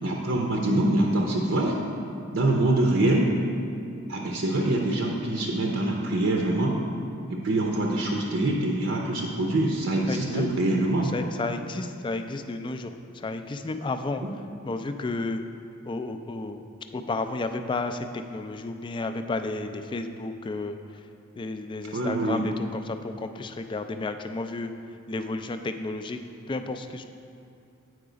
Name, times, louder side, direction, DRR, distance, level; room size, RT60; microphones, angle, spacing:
voice 1, 0.0-1.8 2.3-3.3 4.1-6.8 7.3-11.1 14.2-14.3 21.9-22.5, right 1 dB, 80° right, 0 dB, 0.6 m, -24 dB
voice 2, 10.1-10.5 11.1-14.2 14.6-15.4 15.9-16.6 16.9-20.8 21.4-24.7 25.1-26.2 26.5-27.1, left 3 dB, 25° left, 8 dB, 0.3 m, -32 dB
7.9 x 4.7 x 5.0 m, 2.5 s
head